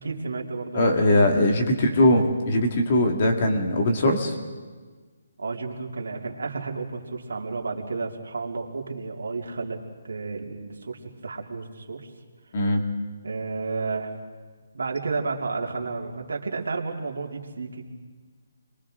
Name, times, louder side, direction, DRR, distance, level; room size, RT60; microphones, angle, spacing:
voice 1, 0.0-1.3 1.7-2.3 5.4-9.8 10.0-12.1 13.2-14.1 14.7-17.8, right 4 dB, 75° right, 0 dB, 3.1 m, -32 dB
voice 2, 0.7-4.3 12.5-12.8, left 1 dB, 40° left, 3 dB, 2.3 m, -21 dB
30.0 x 23.0 x 3.9 m, 1.4 s
hypercardioid pair, 170°, 0 cm